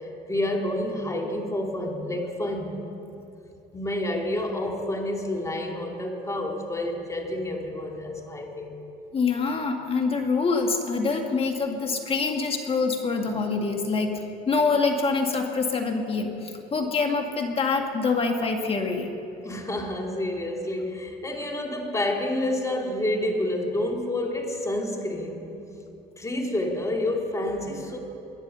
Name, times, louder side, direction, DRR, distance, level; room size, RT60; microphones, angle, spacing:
voice 1, 0.0-2.8 3.1-3.2 3.7-8.8 19.4-25.5 26.2-28.0, left 1 dB, 15° left, 1 dB, 2.5 m, -29 dB
voice 2, 9.1-19.1, left 4 dB, 35° left, 3 dB, 2.1 m, -25 dB
22.0 x 9.7 x 5.6 m, 2.9 s
supercardioid pair, 85°, 18 cm